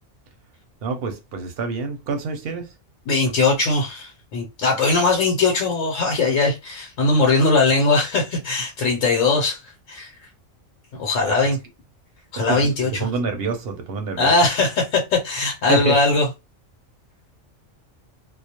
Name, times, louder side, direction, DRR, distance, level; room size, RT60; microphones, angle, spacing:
voice 1, 0.8-2.7 11.3-11.4 12.4-12.7 13.0-14.3 15.7-16.0, right 4 dB, 60° right, 0.7 m, -26 dB
voice 2, 3.1-9.6 9.9-10.1 11.0-11.6 12.3-13.1 14.2-16.3, left 3 dB, 90° left, 1.0 m, -20 dB
2.2 x 2.1 x 2.8 m
omnidirectional pair, 1.3 m